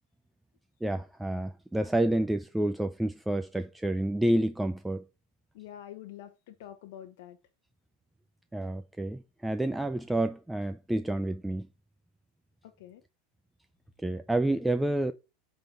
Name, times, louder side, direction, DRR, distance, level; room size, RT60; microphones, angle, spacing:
voice 1, 0.8-5.0 8.5-11.7 14.0-15.1, right 1 dB, 5° right, 0.4 m, -29 dB
voice 2, 5.5-7.4 12.6-13.0, left 11 dB, 70° left, 0.9 m, -46 dB
8.9 x 3.8 x 4.2 m
supercardioid pair, 145°, 0 cm